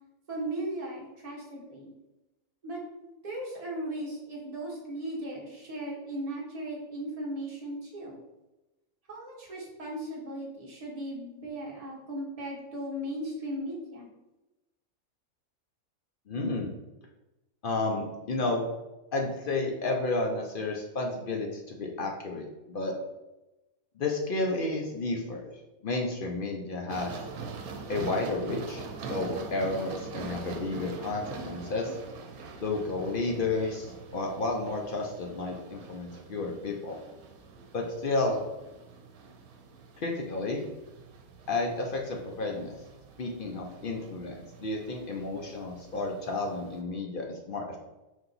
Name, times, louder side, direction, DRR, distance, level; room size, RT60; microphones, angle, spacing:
voice 1, 0.3-1.9 2.6-8.2 9.1-14.1, right 1 dB, 30° right, -4 dB, 1.1 m, -37 dB
voice 2, 16.3-16.7 17.6-18.7 19.1-22.9 24.0-25.4 25.8-27.1 27.9-28.8 29.1-32.0 32.6-37.0 37.7-38.4 40.0-40.6 41.5-42.7 43.2-47.8, left 2 dB, 60° left, 0 dB, 0.6 m, -31 dB
sound 1, 26.9-46.8, right 4 dB, 85° right, 1.1 m, -44 dB
4.6 x 2.8 x 3.9 m, 1.0 s
omnidirectional pair, 1.5 m